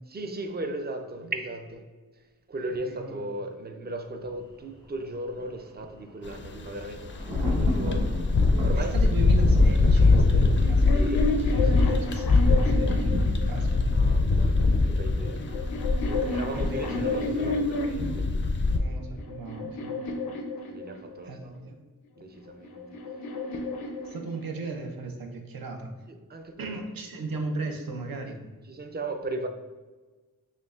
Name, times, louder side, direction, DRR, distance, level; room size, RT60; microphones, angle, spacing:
voice 1, 0.1-1.8 2.1-9.0 10.9-11.3 11.5-12.1 13.9-15.7 16.1-18.3 20.2-20.4 20.7-21.6 22.2-22.8 23.9-24.0 26.1-26.8 28.1-28.3 28.6-29.5, right 2 dB, 30° right, 0.4 m, -37 dB
voice 2, 2.7-3.2 8.8-11.0 11.5-13.1 13.5-14.2 16.6-17.5 18.8-19.9 21.2-21.8 24.0-25.9 26.6-28.4, right 3 dB, 75° right, 0.6 m, -37 dB
Thunder, 4.3-15.3 15.6-15.7, equal, 55° right, 1.2 m, -38 dB
sound 1, 6.3-18.8, left 3 dB, 35° left, 0.4 m, -23 dB
sound 2, 10.5-13.9 14.8-18.2 18.9-21.3 22.3-24.8, left 2 dB, 85° left, 0.5 m, -32 dB
4.4 x 3.0 x 2.4 m
wide cardioid pair, 70°, 35 cm